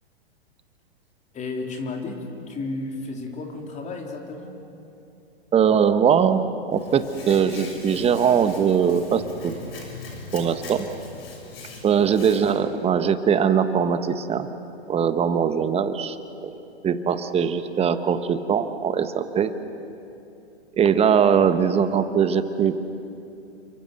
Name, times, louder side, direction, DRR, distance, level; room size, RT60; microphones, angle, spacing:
voice 1, 1.3-4.5 11.9-12.1, left 3 dB, 20° left, 2 dB, 3.6 m, -33 dB
voice 2, 5.5-6.4 6.7-9.5 10.3-10.9 11.8-14.5 14.9-16.2 16.4-16.5 16.8-19.5 20.8-22.8, right 7 dB, 20° right, 11 dB, 1.3 m, -21 dB
Hands, 6.7-12.5, left 4 dB, 65° left, 6.6 m, -41 dB
29.5 x 23.5 x 6.8 m, 2.8 s
hypercardioid pair, 110°, 32 cm